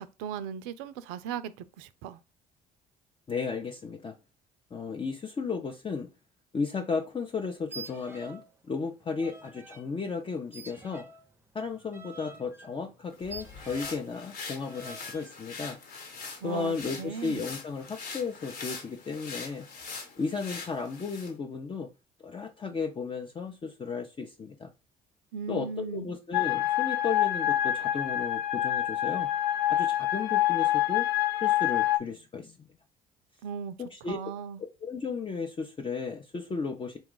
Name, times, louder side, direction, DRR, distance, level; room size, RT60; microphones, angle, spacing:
voice 1, 0.0-2.2 16.4-17.4 25.3-26.1 33.4-33.8 34.1-34.6, right 7 dB, 80° right, 0.4 m, -37 dB
voice 2, 3.3-4.2 4.7-6.1 6.5-8.4 8.7-11.0 11.5-15.8 16.4-19.7 20.2-21.9 22.2-24.7 25.5-29.3 29.7-31.1 31.4-32.7 33.8-34.2 34.8-37.0, left 5 dB, 30° left, 0.6 m, -34 dB
sound 1, 7.6-8.5 8.8-9.9 10.5-14.1 14.6-15.4, right 3 dB, 15° right, 0.6 m, -47 dB
sound 2, 13.1-21.4, left 4 dB, 55° left, 1.1 m, -43 dB
sound 3, 26.3-32.0, left 13 dB, 80° left, 0.5 m, -26 dB
3.9 x 2.3 x 3.8 m
hypercardioid pair, 60°, 19 cm